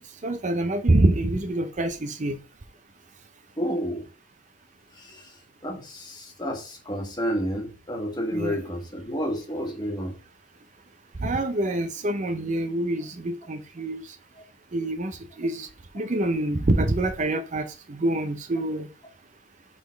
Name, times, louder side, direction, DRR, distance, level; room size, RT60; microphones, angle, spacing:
voice 1, 0.2-2.4 8.3-8.6 11.2-14.0 14.7-15.7 15.9-18.9, right 1 dB, 40° right, 0.6 m, -26 dB
voice 2, 3.6-4.0 5.1-5.2 5.6-10.1, equal, 20° left, 1.5 m, -30 dB
5.1 x 4.1 x 5.6 m
head